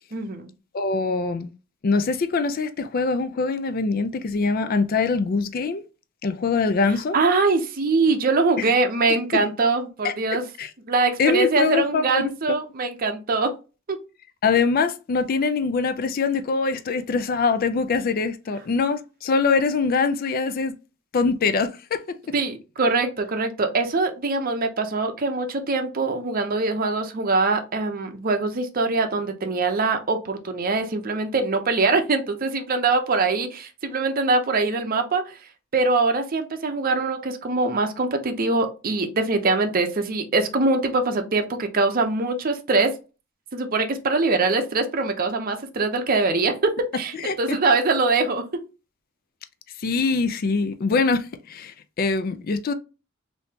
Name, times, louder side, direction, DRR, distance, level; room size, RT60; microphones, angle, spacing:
voice 1, 0.1-0.5 7.1-10.4 10.9-13.5 22.3-35.4 35.7-42.9 43.5-48.4, right 3 dB, 45° right, 0.6 m, -23 dB
voice 2, 0.7-1.5 1.8-5.8 6.2-7.2 8.6-8.7 9.1-9.4 10.0-10.7 11.2-12.3 14.4-20.8 21.1-22.2 47.1-47.6 49.8-52.7, left 4 dB, 45° left, 0.4 m, -23 dB
3.5 x 2.7 x 2.8 m
head